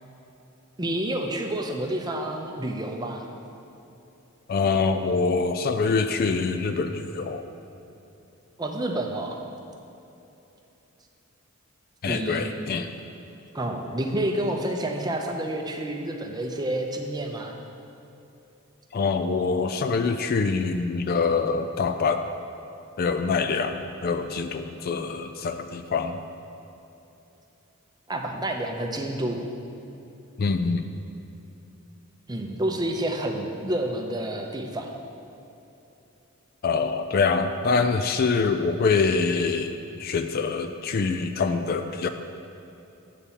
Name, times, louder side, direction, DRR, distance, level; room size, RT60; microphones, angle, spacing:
voice 1, 0.8-3.3 8.6-9.4 12.1-12.5 13.5-17.6 28.1-29.5 32.3-34.9, right 1 dB, 20° right, 3 dB, 0.6 m, -29 dB
voice 2, 4.5-7.4 12.0-12.9 18.9-22.2 23.0-26.2 30.4-30.9 36.6-42.1, left 4 dB, 45° left, 8 dB, 0.3 m, -25 dB
8.2 x 4.3 x 7.2 m, 3.0 s
head